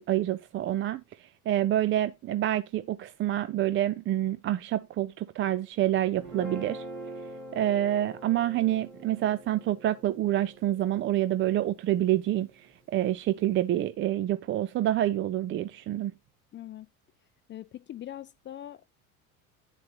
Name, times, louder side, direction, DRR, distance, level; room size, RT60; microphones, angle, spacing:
voice 1, 0.0-6.8 7.5-16.1, right 13 dB, 30° right, 0.5 m, -27 dB
Guitar, 6.1-12.5, right 2 dB, 85° right, 4.0 m, -44 dB
voice 2, 16.5-16.9 17.5-18.9, left 12 dB, 25° left, 0.5 m, -42 dB
9.9 x 7.4 x 2.9 m
figure-of-eight pair, 70°, 44 cm